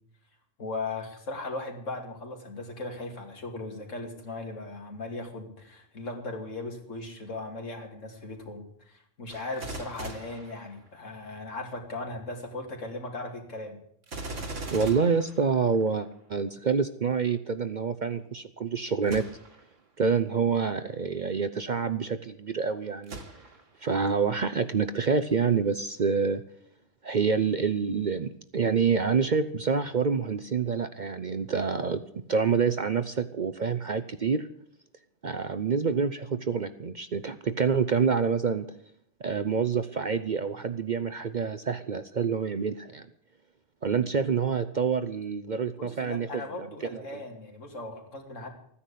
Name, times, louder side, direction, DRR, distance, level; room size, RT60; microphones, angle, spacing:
voice 1, 0.6-13.8 45.8-48.5, left 2 dB, 75° left, 3 dB, 2.9 m, -38 dB
Gunshot gunfire, 9.3-11.3 14.0-16.1 19.0-19.7 20.3-20.4 23.0-23.8 24.4-24.5, right 2 dB, 70° right, 2.2 m, -40 dB
voice 2, 14.7-19.3 20.0-23.2 23.8-26.4 27.0-32.0 32.3-34.5 35.2-38.7 39.2-43.1 43.8-46.7 46.9-47.2, right 5 dB, 45° right, 11 dB, 0.7 m, -27 dB
14.5 x 10.0 x 8.4 m, 0.67 s
omnidirectional pair, 1.3 m